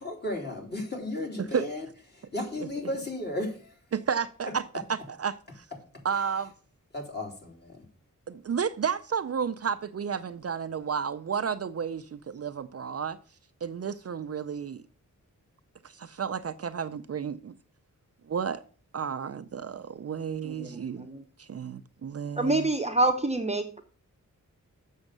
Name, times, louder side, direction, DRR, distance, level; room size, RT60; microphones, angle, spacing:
voice 1, 0.0-1.9 2.1-3.7 6.9-7.8, left 1 dB, 30° left, 3.3 m, -34 dB
voice 2, 3.9-5.7 6.0-6.5 8.3-13.2 13.6-14.8 15.8-17.5 18.3-18.6 18.9-22.7, right 7 dB, 50° right, 0.5 m, -32 dB
voice 3, 20.4-21.2 22.4-23.8, right 2 dB, 20° right, 0.8 m, -27 dB
7.1 x 6.4 x 6.5 m
wide cardioid pair, 90°, 32 cm